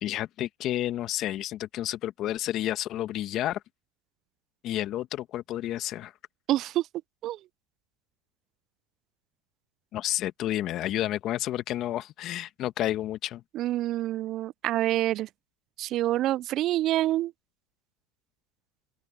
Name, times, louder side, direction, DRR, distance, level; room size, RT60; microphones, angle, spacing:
voice 1, 0.0-3.6 4.6-6.1 9.9-13.4, left 13 dB, 50° left, 1.5 m, -30 dB
voice 2, 6.5-6.8 7.2-7.4 13.5-15.3 15.8-17.3, right 14 dB, 50° right, 0.3 m, -27 dB
open air
hypercardioid pair, 100°, 0 cm